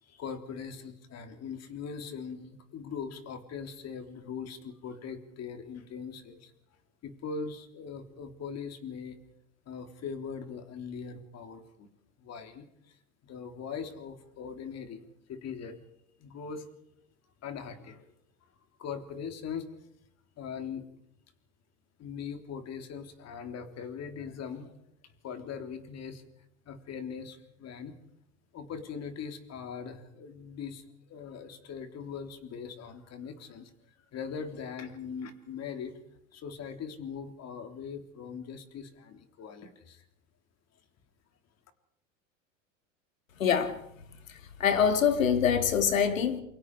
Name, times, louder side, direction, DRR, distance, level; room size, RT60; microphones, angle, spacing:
voice 1, 0.0-6.5 7.0-9.2 9.7-11.9 12.2-13.0 13.2-15.0 15.3-15.8 16.2-16.6 17.4-18.1 18.8-19.7 20.4-20.9 22.0-24.7 25.0-26.2 26.7-27.9 28.5-33.7 34.1-36.0 36.3-40.0, left 6 dB, 40° left, 3.6 m, -41 dB
voice 2, 43.4-43.8 44.3-46.4, left 7 dB, 90° left, 2.3 m, -25 dB
28.5 x 23.5 x 4.9 m
hypercardioid pair, 90°, 39 cm